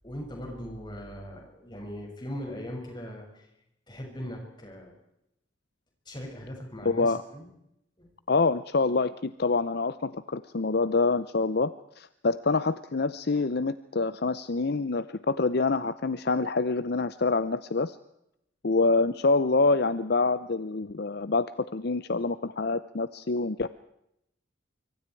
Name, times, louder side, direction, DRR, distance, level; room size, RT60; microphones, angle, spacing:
voice 1, 0.0-3.5 3.9-4.9 6.0-7.5 8.0-8.1, equal, 25° left, 1 dB, 6.6 m, -39 dB
voice 2, 6.8-7.2 8.3-18.0 18.6-21.5 21.7-23.7, left 3 dB, 55° left, 14 dB, 0.7 m, -26 dB
25.0 x 24.5 x 4.7 m, 0.81 s
head